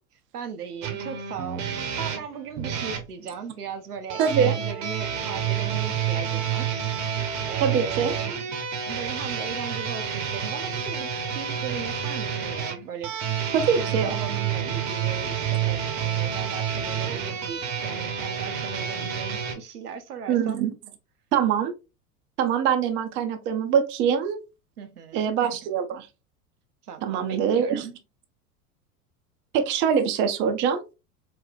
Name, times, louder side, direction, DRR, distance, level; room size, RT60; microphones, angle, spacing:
voice 1, 0.3-6.9 7.4-8.4 8.8-13.1 13.8-20.6 24.8-25.3 26.8-27.9, right 6 dB, 80° right, 0.6 m, -38 dB
sound 1, 0.8-3.1 4.1-19.5, right 8 dB, 45° right, 0.8 m, -29 dB
voice 2, 4.2-4.6 7.6-8.1 13.5-14.1 20.3-20.7 21.3-21.7 22.4-24.4 25.1-26.1 27.0-27.9 29.5-30.8, right 7 dB, 25° right, 0.5 m, -23 dB
4.1 x 2.1 x 2.4 m
figure-of-eight pair, 85°, 46 cm